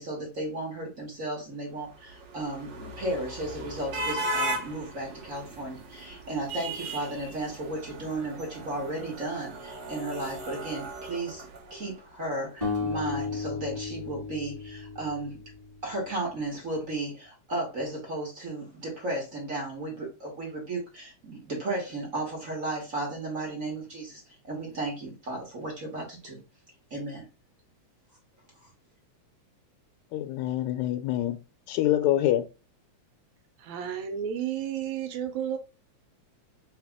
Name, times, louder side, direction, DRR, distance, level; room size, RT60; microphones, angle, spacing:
voice 1, 0.0-15.4 15.8-26.4 26.9-27.2, right 2 dB, 40° right, 1.3 m, -34 dB
sound 1, 1.8-12.1, right 1 dB, 60° right, 1.1 m, -37 dB
sound 2, 12.6-15.8, left 4 dB, 15° right, 2.0 m, -33 dB
voice 2, 30.1-31.4 31.7-32.4, left 13 dB, 80° left, 1.9 m, -25 dB
voice 3, 33.6-35.6, right 9 dB, 80° right, 1.9 m, -32 dB
4.0 x 3.3 x 3.5 m
omnidirectional pair, 3.3 m